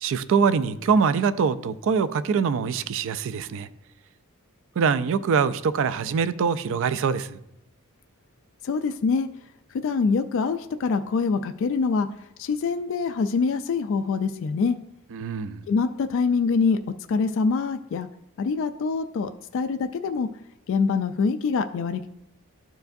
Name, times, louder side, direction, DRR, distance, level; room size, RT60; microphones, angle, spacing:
voice 1, 0.0-3.7 4.8-7.4 15.1-15.6, right 6 dB, 60° right, 0.3 m, -24 dB
voice 2, 8.6-9.3 9.7-12.1 12.4-14.8 15.7-16.8 17.1-18.1 18.4-20.3 20.7-22.1, left 5 dB, 60° left, 0.3 m, -24 dB
13.0 x 4.6 x 2.6 m
head